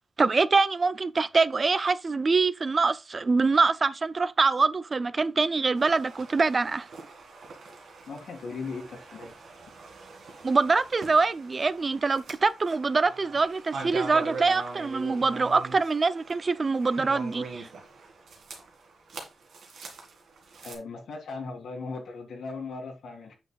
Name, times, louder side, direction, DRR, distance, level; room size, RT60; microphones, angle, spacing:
voice 1, 0.2-6.9 10.4-17.7, right 4 dB, 35° right, 0.3 m, -24 dB
sound 1, 5.8-20.8, right 4 dB, 80° right, 1.9 m, -42 dB
voice 2, 8.1-9.3 20.6-23.4, left 4 dB, 85° left, 2.0 m, -38 dB
8.2 x 6.4 x 2.3 m
wide cardioid pair, 145°, 0 cm